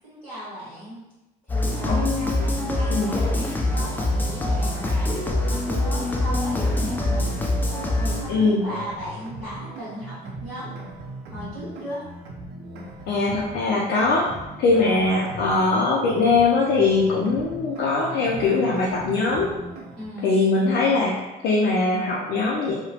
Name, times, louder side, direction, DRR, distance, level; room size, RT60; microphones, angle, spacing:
voice 1, 0.0-1.0 1.5-5.2 5.4-7.4 7.9-10.7 11.3-12.0 14.8-15.1 20.0-20.3, equal, 10° right, -13 dB, 1.4 m, -36 dB
sound 1, 1.5-8.2, left 1 dB, 10° left, 0.4 m, -24 dB
voice 2, 1.9-2.5 2.9-3.1 8.3-8.6 13.1-19.5 20.2-22.7, left 3 dB, 70° left, -4 dB, 0.4 m, -21 dB
sound 2, 3.6-20.1, right 1 dB, 85° right, 0.5 m, -39 dB
2.9 x 2.1 x 2.7 m, 0.99 s
cardioid pair, 110°, 17 cm